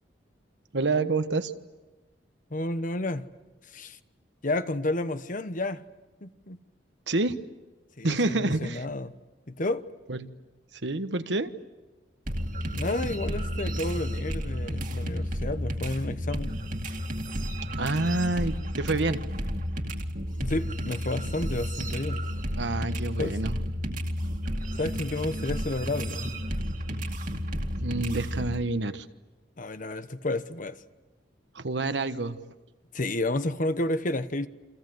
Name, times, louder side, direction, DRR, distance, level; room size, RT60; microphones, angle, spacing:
voice 1, 0.7-1.5 7.1-7.4 8.0-8.9 10.1-10.3 10.7-11.5 17.8-19.2 22.6-23.6 27.8-29.1 31.5-32.4, right 2 dB, 75° right, 1.3 m, -28 dB
voice 2, 2.5-3.3 3.7-4.0 4.4-5.8 6.2-6.6 8.0-9.1 9.5-9.9 12.7-16.6 20.4-22.2 23.2-23.4 24.8-26.3 29.6-30.8 32.9-34.5, left 2 dB, 50° left, 1.1 m, -31 dB
sound 1, 12.3-28.5, equal, 50° right, 2.2 m, -32 dB
28.5 x 26.5 x 8.0 m
head